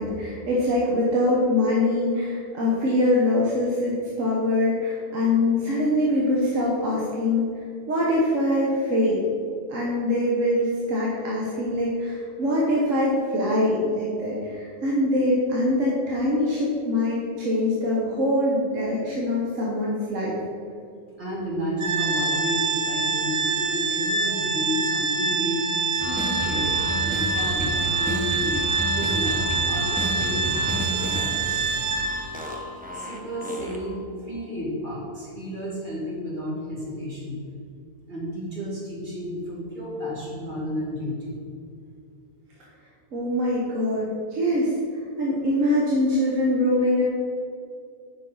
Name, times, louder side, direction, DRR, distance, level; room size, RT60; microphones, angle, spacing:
voice 1, 0.0-7.5 7.9-9.2 9.7-20.4 43.1-44.7 45.2-47.0, left 1 dB, 65° right, -5 dB, 1.4 m, -23 dB
voice 2, 21.2-25.6 25.9-28.6 28.9-29.4 29.7-31.6 32.9-37.4 38.1-41.4, equal, 35° right, -6 dB, 2.2 m, -32 dB
Organ, 21.8-32.5, right 4 dB, 85° right, 1.2 m, -26 dB
sound 1, 26.0-34.1, equal, 10° right, 0.5 m, -31 dB
8.5 x 6.0 x 3.8 m, 2.4 s
omnidirectional pair, 1.4 m